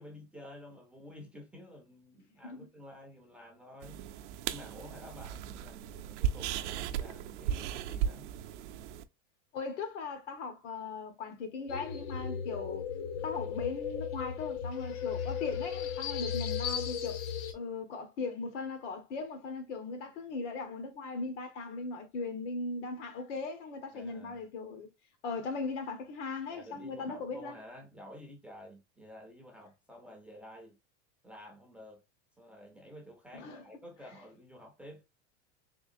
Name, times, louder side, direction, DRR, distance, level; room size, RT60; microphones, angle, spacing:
voice 1, 0.0-4.0 4.5-8.3 23.9-24.4 26.5-30.8 31.2-32.0 32.4-35.0, left 1 dB, 5° right, 0.3 m, -51 dB
sound 1, 3.8-9.0, right 9 dB, 75° right, 0.5 m, -36 dB
voice 2, 9.5-12.9 13.2-17.2 17.5-24.9 25.2-27.6 33.3-33.6, left 4 dB, 90° left, 1.3 m, -38 dB
sound 2, 11.7-17.5, left 8 dB, 60° left, 0.7 m, -36 dB
3.6 x 3.2 x 2.5 m
supercardioid pair, 160°, 35 cm